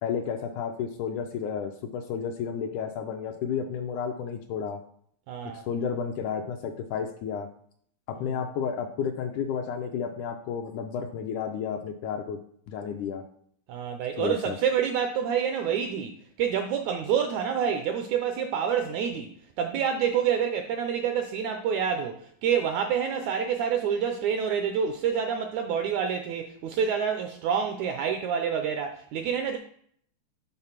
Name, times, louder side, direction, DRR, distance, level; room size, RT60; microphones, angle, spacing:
voice 1, 0.0-4.8 5.5-7.5 8.1-12.4 12.7-13.2 14.2-14.6, left 7 dB, 80° left, 5 dB, 1.8 m, -32 dB
voice 2, 5.3-5.6 8.2-8.4 13.7-29.6, right 7 dB, 80° right, 5 dB, 1.6 m, -28 dB
6.8 x 3.9 x 5.8 m, 0.63 s
omnidirectional pair, 3.9 m